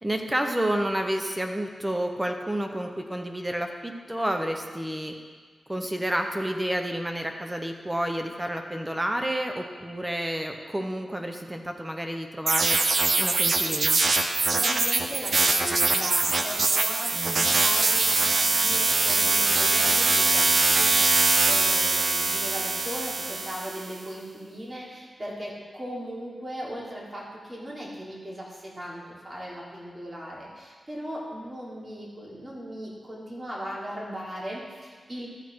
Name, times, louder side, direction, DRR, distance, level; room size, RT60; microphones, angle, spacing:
voice 1, 0.0-5.1 5.7-12.8 13.2-14.0 17.1-17.5, right 1 dB, 15° right, 4 dB, 1.2 m, -30 dB
sound 1, 12.5-23.9, right 3 dB, 60° right, 0.8 m, -23 dB
voice 2, 14.5-35.3, equal, 35° right, -5 dB, 3.5 m, -38 dB
13.5 x 6.4 x 4.8 m, 1.5 s
cardioid pair, 45°, 0 cm